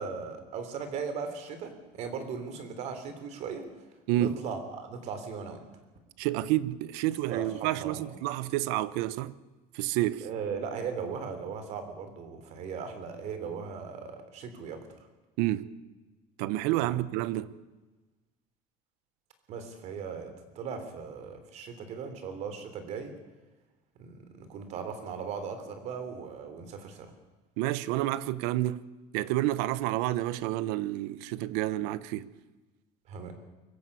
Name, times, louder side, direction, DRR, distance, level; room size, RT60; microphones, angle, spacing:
voice 1, 0.0-3.7 4.1-5.6 7.3-8.0 10.2-14.9 16.8-17.0 19.5-23.1 24.0-27.1 33.1-33.3, right 6 dB, 45° right, 3.3 m, -38 dB
voice 2, 6.2-9.3 9.7-10.3 15.4-15.7 16.4-17.5 27.6-28.8 29.1-32.3, right 15 dB, 80° right, 1.0 m, -29 dB
23.0 x 15.5 x 8.5 m
cardioid pair, 175°, 16 cm